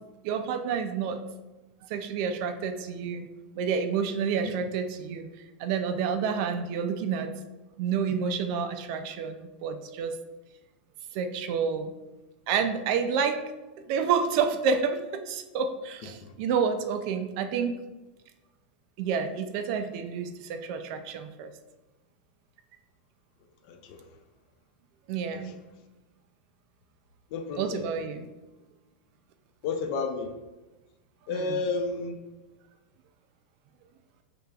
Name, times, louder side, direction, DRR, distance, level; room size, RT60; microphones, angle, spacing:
voice 1, 0.2-1.2 1.8-3.3 3.6-5.3 5.6-7.3 7.8-10.2 11.1-11.9 12.5-13.4 13.9-17.7 19.0-21.5 25.1-25.6 27.6-28.2 31.3-31.6, right 6 dB, 40° right, 8 dB, 0.3 m, -29 dB
voice 2, 27.3-27.8 29.6-30.3 31.3-32.1, left 4 dB, 40° left, 6 dB, 0.4 m, -31 dB
4.9 x 3.3 x 2.3 m, 1.1 s
supercardioid pair, 165°, 6 cm